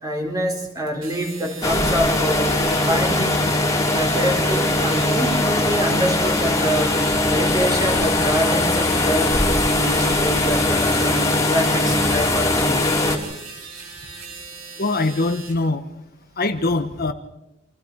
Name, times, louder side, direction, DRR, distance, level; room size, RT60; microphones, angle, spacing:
voice 1, 0.0-3.5 3.9-7.0 7.3-9.4 9.8-13.0, equal, 20° right, 2 dB, 4.2 m, -26 dB
sound 1, 0.9-15.6, right 4 dB, 80° right, 5.3 m, -38 dB
sound 2, 1.6-13.2, left 2 dB, 15° left, 3.2 m, -20 dB
voice 2, 14.8-15.8 16.4-17.1, left 2 dB, 45° left, 8 dB, 1.2 m, -22 dB
28.5 x 26.5 x 4.8 m, 0.87 s
head